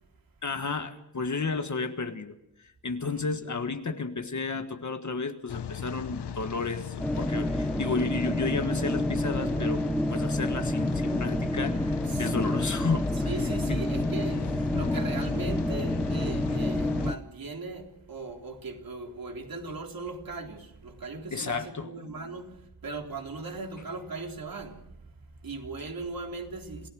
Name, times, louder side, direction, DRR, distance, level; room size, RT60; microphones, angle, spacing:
voice 1, 0.4-13.3 13.7-13.8 21.3-21.9, left 4 dB, 45° left, 1.6 m, -32 dB
Rain, 5.5-17.2, left 8 dB, 75° left, 1.0 m, -37 dB
sound 1, 7.0-17.1, left 1 dB, ahead, 0.7 m, -29 dB
voice 2, 13.1-26.9, right 3 dB, 55° right, 3.7 m, -39 dB
28.0 x 17.5 x 6.3 m
wide cardioid pair, 125°, 41 cm